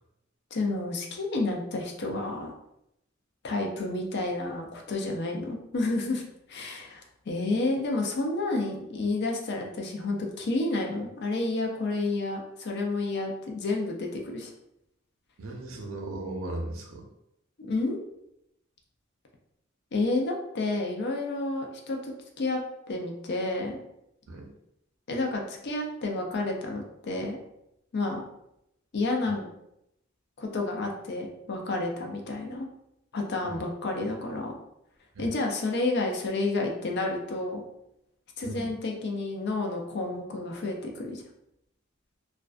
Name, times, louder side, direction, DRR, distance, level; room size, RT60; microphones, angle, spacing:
voice 1, 0.5-2.5 3.4-6.2 6.5-14.5 17.7-18.0 19.9-22.6 22.9-23.8 25.1-27.4 27.9-28.2 28.9-29.5 30.4-32.7 33.1-34.6 35.2-37.6 38.4-41.2, left 2 dB, 55° left, 2 dB, 0.4 m, -30 dB
voice 2, 15.4-17.1 24.3-24.5 29.2-29.4 33.4-33.6 35.1-35.3 38.4-38.7, right 2 dB, 75° right, 1 dB, 0.5 m, -37 dB
2.4 x 2.3 x 2.2 m, 0.82 s
head